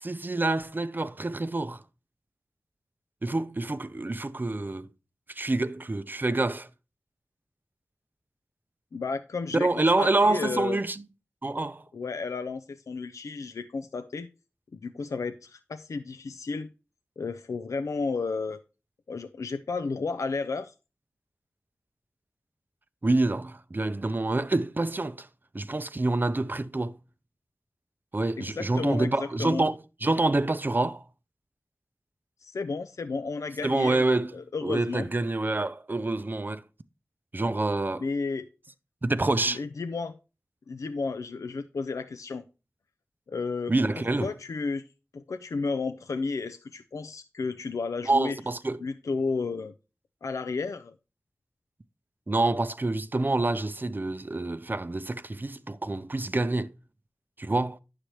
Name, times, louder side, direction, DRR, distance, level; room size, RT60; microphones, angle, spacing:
voice 1, 0.0-1.8 3.2-4.9 5.3-6.7 9.5-11.0 11.4-11.8 23.0-25.3 25.5-27.0 28.1-31.0 33.6-34.3 34.6-36.6 37.3-38.0 39.0-39.6 43.7-44.3 48.1-48.8 52.3-56.7 57.4-57.8, right 2 dB, 35° right, 0.5 m, -27 dB
voice 2, 8.9-10.8 11.9-14.3 14.7-16.7 17.2-18.6 19.1-20.7 28.4-29.7 32.4-34.0 34.3-35.1 38.0-38.5 39.5-40.1 40.7-42.4 43.3-43.7 44.2-44.9 45.1-48.4 48.8-49.7 50.2-50.9, left 4 dB, 80° left, 0.4 m, -32 dB
9.9 x 6.5 x 3.0 m
cardioid pair, 40°, 5 cm